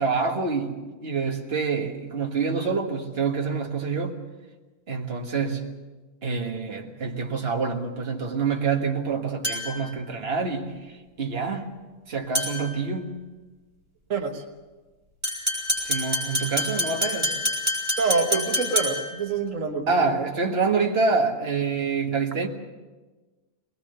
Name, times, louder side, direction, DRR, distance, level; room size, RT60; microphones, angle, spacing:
voice 1, 0.0-4.2 4.9-5.8 6.2-11.7 12.1-13.2 15.8-17.3 19.9-22.5, right 4 dB, 50° right, 1.9 m, -27 dB
sound 1, 9.4-9.9 12.3-12.8 15.2-19.2, left 1 dB, 25° right, 7.8 m, -27 dB
voice 2, 14.1-14.4 18.0-20.1, right 4 dB, 85° right, 1.7 m, -26 dB
21.5 x 20.5 x 6.8 m
omnidirectional pair, 1.3 m